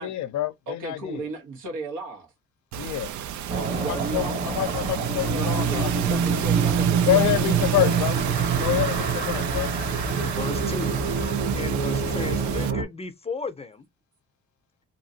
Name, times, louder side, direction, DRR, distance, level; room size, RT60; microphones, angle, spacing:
voice 1, 0.0-1.2 2.8-3.1 3.8-6.4 7.0-8.2 8.6-9.7, left 13 dB, 75° left, 0.5 m, -27 dB
voice 2, 0.7-2.3 3.5-4.3 5.3-7.2 7.8-8.1 8.5-8.9, right 2 dB, 85° right, 1.5 m, -35 dB
sound 1, 2.7-12.7, right 10 dB, 70° right, 0.5 m, -32 dB
sound 2, 3.5-12.8, right 6 dB, 30° right, 1.1 m, -25 dB
voice 3, 10.2-11.0 11.6-13.9, left 4 dB, 20° left, 0.6 m, -34 dB
2.9 x 2.6 x 2.7 m
cardioid pair, 90°, 30 cm